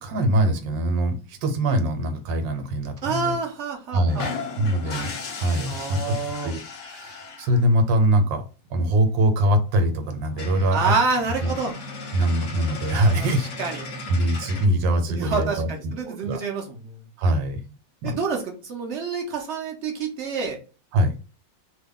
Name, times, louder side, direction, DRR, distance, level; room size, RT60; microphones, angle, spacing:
voice 1, 0.0-3.4 3.9-4.3 4.6-6.2 6.4-10.9 11.4-11.5 12.1-13.4 14.1-16.4 17.2-17.8 18.0-18.1 20.9-21.1, right 1 dB, 90° right, 7 dB, 1.4 m, -23 dB
voice 2, 3.0-4.3 5.7-6.5 10.7-11.7 13.6-13.8 15.1-17.0 18.0-20.6, right 4 dB, 60° right, 2 dB, 0.7 m, -27 dB
sound 1, 4.1-7.7 9.3-9.4 9.6-9.7 10.1-10.2 10.3-14.7, left 4 dB, 60° left, 0.8 m, -36 dB
2.9 x 2.2 x 3.6 m, 0.34 s
omnidirectional pair, 2.0 m